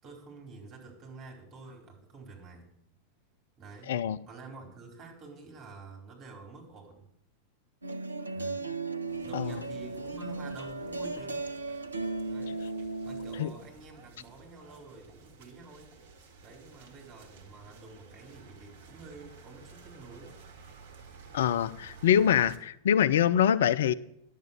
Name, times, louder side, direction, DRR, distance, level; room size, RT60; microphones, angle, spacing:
voice 1, 0.0-2.7 3.6-3.9 4.3-7.1 8.3-8.7 9.2-11.5 12.3-12.6 13.0-15.9 16.4-20.4, right 3 dB, 30° right, 1 dB, 4.3 m, -48 dB
voice 2, 3.9-4.2 9.3-9.6 13.4-13.5 21.3-23.9, left 9 dB, 60° left, 15 dB, 0.4 m, -24 dB
sound 1, 7.8-13.4, right 3 dB, 80° right, 0.6 m, -36 dB
sound 2, 9.1-22.6, right 4 dB, 55° right, 1.6 m, -53 dB
10.5 x 7.3 x 7.4 m, 0.75 s
figure-of-eight pair, 90°, 0 cm